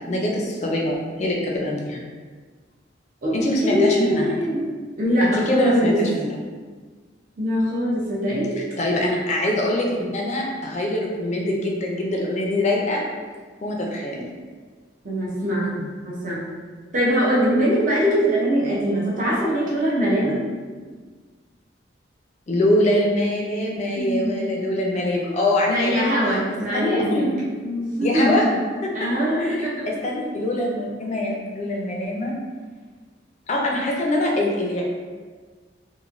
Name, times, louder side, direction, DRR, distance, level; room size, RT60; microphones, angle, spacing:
voice 1, 0.1-2.0 3.3-4.4 5.2-6.4 8.6-13.0 13.6-14.2 22.5-26.0 26.7-27.3 28.0-28.5 28.8-28.9 29.4-32.3 33.5-34.8, left 1 dB, 40° left, -1 dB, 0.4 m, -24 dB
voice 2, 3.2-4.6 5.0-6.0 7.4-8.6 15.0-16.4 16.9-20.4 24.0-24.3 25.7-27.2 27.6-28.5 28.9-29.9, equal, 45° right, -6 dB, 0.6 m, -22 dB
3.0 x 2.1 x 2.4 m, 1.5 s
head